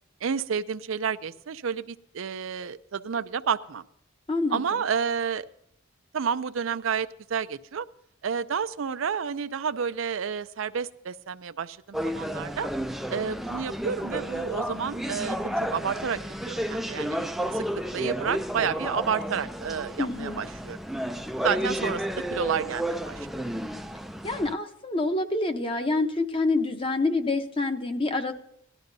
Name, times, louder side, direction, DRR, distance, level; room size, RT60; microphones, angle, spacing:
voice 1, 0.2-3.8 4.5-5.5 6.1-7.9 8.2-12.7 13.1-16.2 16.5-17.2 17.5-17.7 17.9-20.8 21.4-23.3, right 6 dB, 75° right, 12 dB, 0.5 m, -30 dB
voice 2, 4.3-4.6 20.0-20.4 24.2-28.3, left 2 dB, 25° left, 7 dB, 0.8 m, -27 dB
sound 1, 11.9-24.5, equal, ahead, 0.3 m, -32 dB
18.0 x 12.0 x 2.7 m, 0.74 s
head